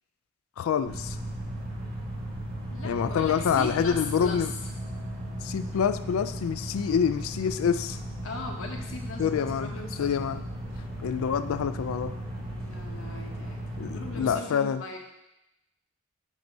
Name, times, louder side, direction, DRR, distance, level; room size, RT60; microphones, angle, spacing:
voice 1, 0.6-1.2 2.8-4.5 5.4-8.0 9.2-9.7 10.0-10.4 11.0-12.1 13.8-14.8, left 7 dB, 90° left, 12 dB, 0.3 m, -27 dB
sound 1, 0.8-14.4, equal, 45° right, 1.4 m, -36 dB
voice 2, 2.7-4.5 8.2-10.3 12.5-15.0, left 3 dB, 70° left, 1 dB, 1.0 m, -39 dB
7.2 x 2.7 x 5.3 m, 0.88 s
head